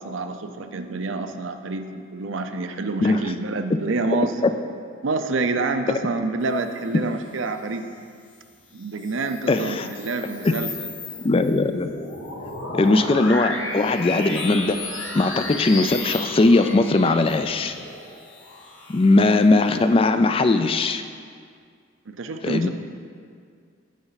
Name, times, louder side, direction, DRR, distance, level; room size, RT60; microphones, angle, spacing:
voice 1, 0.0-4.4 5.0-7.9 8.7-10.9 22.1-22.7, right 3 dB, 75° right, 7 dB, 0.6 m, -27 dB
voice 2, 3.0-3.3 4.4-4.5 9.5-9.9 10.4-10.5 11.2-11.9 12.7-14.8 15.1-17.8 18.9-21.0 22.4-22.7, left 2 dB, 30° left, 9 dB, 0.3 m, -19 dB
sound 1, 8.8-19.7, left 2 dB, 75° left, 1.2 m, -33 dB
15.5 x 5.3 x 4.0 m, 2.2 s
head